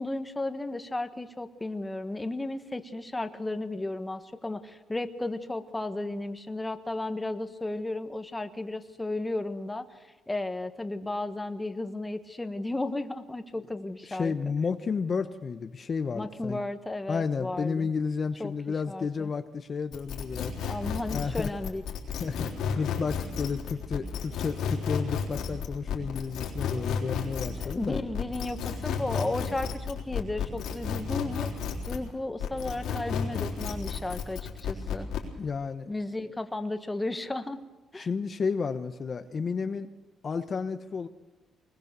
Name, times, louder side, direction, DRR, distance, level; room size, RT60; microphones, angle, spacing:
voice 1, 0.0-9.8 10.3-14.3 16.1-17.9 18.4-18.5 18.9-19.3 20.7-21.8 27.6-31.6 31.9-35.1 35.9-37.6 37.9-38.1, left 2 dB, 15° left, 9 dB, 1.5 m, -34 dB
voice 2, 14.1-16.6 17.1-20.8 21.1-21.5 22.2-28.0 35.4-35.9 38.0-39.9 40.2-41.1, left 5 dB, 45° left, 9 dB, 1.0 m, -32 dB
sound 1, 19.9-32.1 32.4-35.3, left 7 dB, 80° left, 3.7 m, -32 dB
23.5 x 21.0 x 6.8 m, 1.2 s
cardioid pair, 90°, 0 cm